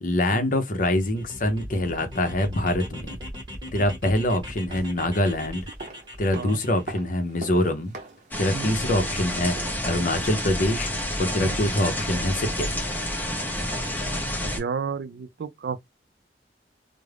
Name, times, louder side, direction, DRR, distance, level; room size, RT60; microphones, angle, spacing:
voice 1, 0.0-3.2 3.7-5.7 6.2-7.9 8.4-9.5 9.8-10.9 11.2-12.7, left 1 dB, 50° left, 0.6 m, -24 dB
sound 1, 1.0-6.8, equal, 25° right, 1.1 m, -39 dB
sound 2, 4.5-10.5 10.8-10.9, right 2 dB, 45° right, 0.7 m, -43 dB
sound 3, 8.3-14.6, left 1 dB, 10° left, 0.6 m, -29 dB
voice 2, 14.4-15.9, right 6 dB, 70° right, 0.4 m, -32 dB
2.4 x 2.0 x 3.2 m
head